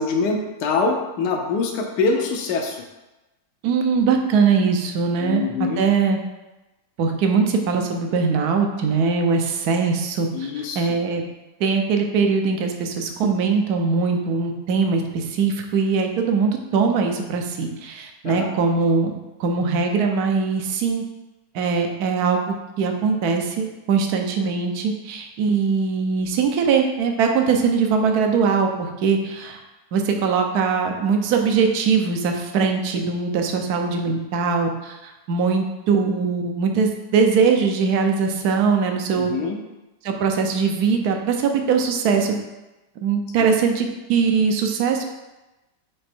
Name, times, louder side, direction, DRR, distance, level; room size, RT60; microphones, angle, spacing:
voice 1, 0.0-2.8 5.2-5.8 10.3-10.9 18.2-18.5 39.1-39.6 43.4-43.5, left 4 dB, 70° left, 1 dB, 1.2 m, -24 dB
voice 2, 3.6-6.2 7.0-11.2 11.6-19.1 19.4-21.0 21.5-29.6 29.9-39.3 40.0-42.3 43.0-45.0, right 5 dB, 65° right, 3 dB, 1.2 m, -21 dB
5.2 x 4.4 x 4.4 m, 1.0 s
omnidirectional pair, 2.0 m